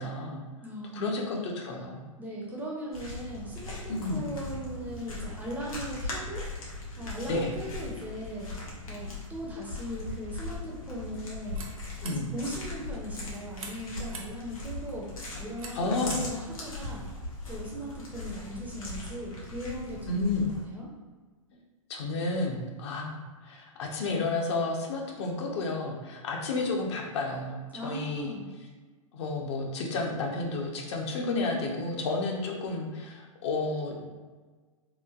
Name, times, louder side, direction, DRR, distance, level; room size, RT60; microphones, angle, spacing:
voice 1, 0.0-0.4 0.9-2.0 3.9-4.3 7.3-7.5 12.0-12.3 15.7-16.2 20.1-20.5 21.5-21.6 21.9-28.4 29.1-34.0, left 3 dB, 55° left, 0 dB, 0.6 m, -31 dB
voice 2, 0.6-1.2 2.2-6.4 7.0-8.5 8.9-11.6 12.0-15.1 15.4-17.0 17.5-20.9 27.7-28.5 31.2-31.7, equal, 10° right, -4 dB, 0.4 m, -38 dB
sound 1, 2.9-20.6, left 2 dB, 80° left, 0.9 m, -39 dB
sound 2, 11.1-17.2, right 3 dB, 90° right, 0.5 m, -49 dB
3.1 x 2.1 x 2.4 m, 1.4 s
hypercardioid pair, 115°, 18 cm